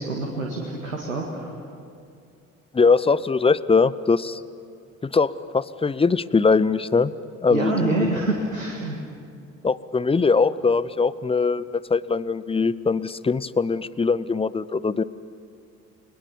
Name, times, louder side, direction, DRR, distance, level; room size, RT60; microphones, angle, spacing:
voice 1, 0.0-1.5 7.5-9.0, right 2 dB, 85° right, 0 dB, 2.0 m, -26 dB
voice 2, 2.7-4.4 5.0-7.1 7.4-8.1 9.6-11.6 11.9-15.0, left 4 dB, 15° left, 17 dB, 0.7 m, -21 dB
30.0 x 21.5 x 7.2 m, 2.3 s
figure-of-eight pair, 50°, 40 cm